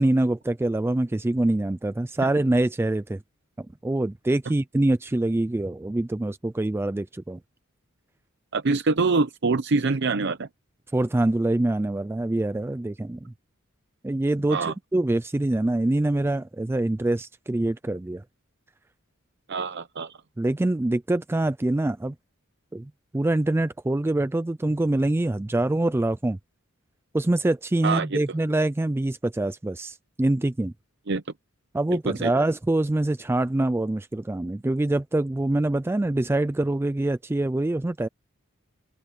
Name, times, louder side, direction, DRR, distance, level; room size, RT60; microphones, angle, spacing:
voice 1, 0.0-3.2 3.6-7.4 10.9-13.3 14.0-18.2 20.4-22.1 22.7-26.4 27.1-30.7 31.7-38.1, right 1 dB, 10° right, 0.3 m, -25 dB
voice 2, 8.5-10.5 14.5-14.7 19.5-20.2 27.8-28.2 31.1-31.2 32.0-32.3, right 3 dB, 60° right, 0.7 m, -25 dB
open air
head